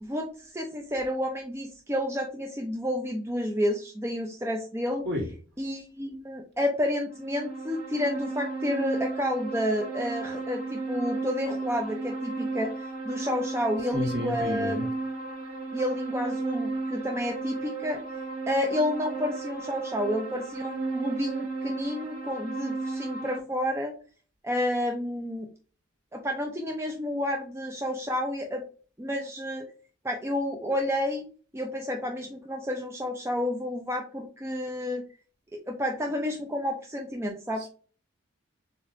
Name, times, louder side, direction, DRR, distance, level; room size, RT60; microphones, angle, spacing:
voice 1, 0.0-5.1 5.6-14.9 15.7-18.0 18.5-24.0 24.4-25.5 26.1-28.6 29.0-29.7 30.0-31.3 31.5-35.0 35.5-37.7, left 1 dB, 10° right, 0.6 m, -30 dB
sound 1, 7.1-23.4, right 3 dB, 85° right, 1.4 m, -34 dB
voice 2, 13.9-14.9 37.6-37.7, left 1 dB, 50° right, 1.6 m, -31 dB
7.2 x 2.7 x 2.6 m
head